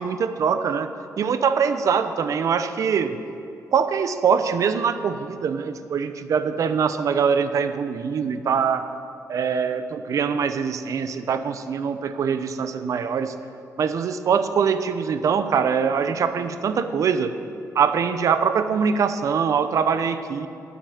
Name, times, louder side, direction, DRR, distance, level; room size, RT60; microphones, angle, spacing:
voice 1, 0.0-3.2 3.7-8.9 9.3-13.3 13.8-17.3 17.7-20.5, right 6 dB, 60° right, 11 dB, 0.7 m, -23 dB
9.2 x 8.5 x 8.6 m, 2.6 s
cardioid pair, 120°, 6 cm